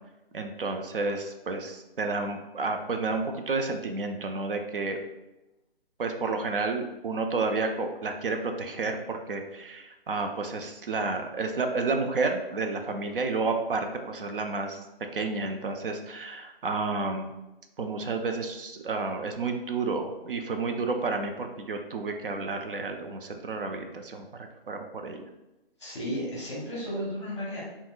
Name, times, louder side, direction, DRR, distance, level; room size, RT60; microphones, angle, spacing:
voice 1, 0.3-5.0 6.0-14.8 15.1-17.3 17.8-24.3 24.7-25.3, right 3 dB, 65° right, 4 dB, 0.4 m, -31 dB
voice 2, 25.8-27.6, equal, 30° left, -5 dB, 0.8 m, -33 dB
3.9 x 2.0 x 2.3 m, 0.98 s
hypercardioid pair, 175°, 30 cm